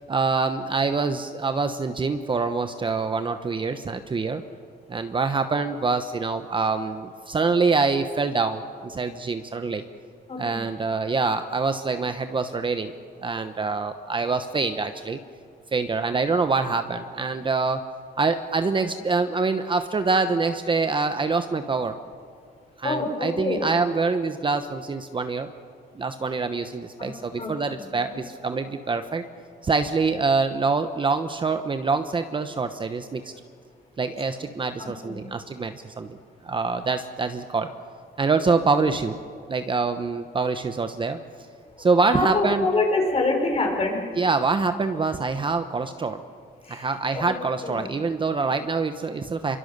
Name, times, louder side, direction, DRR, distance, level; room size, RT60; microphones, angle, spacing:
voice 1, 0.1-4.4 4.9-9.8 10.4-12.9 13.2-15.2 15.7-17.8 18.2-22.0 22.8-25.5 25.9-29.2 29.6-33.3 34.0-36.2 36.4-37.7 38.2-39.2 39.5-41.2 41.8-42.6 44.2-46.2 46.7-49.6, right 4 dB, 25° right, 8 dB, 1.0 m, -25 dB
voice 2, 10.3-10.7 22.8-23.7 27.0-28.2 34.8-35.2 41.8-41.9 42.1-44.1 46.6-46.9 47.1-47.3 47.6-47.9, left 2 dB, 30° left, 2 dB, 5.2 m, -27 dB
26.5 x 24.0 x 6.7 m, 2.2 s
cardioid pair, 135°, 19 cm